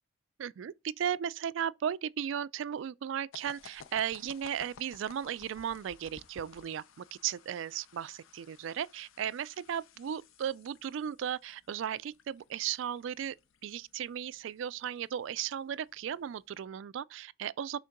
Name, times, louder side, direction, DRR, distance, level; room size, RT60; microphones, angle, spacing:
voice 1, 0.4-13.4 13.6-17.8, right 9 dB, 70° right, 0.3 m, -36 dB
sound 1, 3.3-16.6, left 6 dB, 80° left, 0.5 m, -57 dB
6.3 x 3.7 x 5.8 m
head